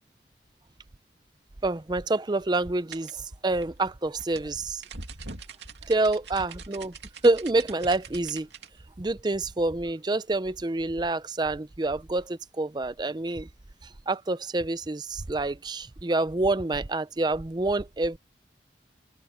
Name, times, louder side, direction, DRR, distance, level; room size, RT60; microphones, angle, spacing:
voice 1, 1.6-4.8 5.9-6.9 7.2-8.5 9.0-13.5 14.1-18.2, right 2 dB, 25° right, 0.5 m, -27 dB
sound 1, 2.9-8.7, right 4 dB, 85° right, 2.6 m, -43 dB
open air
head